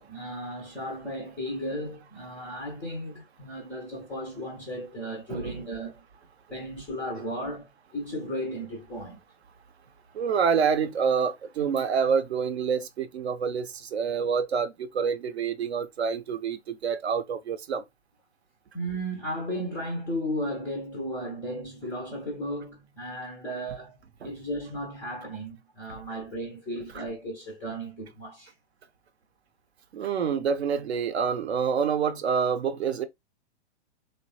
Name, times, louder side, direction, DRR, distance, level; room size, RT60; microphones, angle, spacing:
voice 1, 0.0-6.0 6.5-9.2 18.7-23.9 24.2-28.5, equal, 5° left, 0.3 m, -35 dB
voice 2, 10.1-17.8 24.2-24.3 29.9-33.0, right 6 dB, 65° right, 0.5 m, -27 dB
3.1 x 2.1 x 2.7 m
figure-of-eight pair, 110°, 34 cm